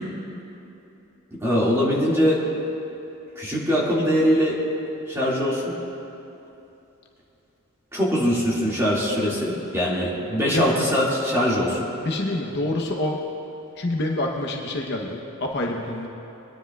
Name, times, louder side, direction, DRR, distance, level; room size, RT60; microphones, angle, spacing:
voice 1, 1.4-2.4 3.4-4.6 5.1-5.7 7.9-11.8, equal, 10° right, -6 dB, 1.9 m, -22 dB
voice 2, 12.0-13.2 13.8-16.1, left 2 dB, 50° left, 0 dB, 0.8 m, -26 dB
21.5 x 9.9 x 2.3 m, 2.9 s
head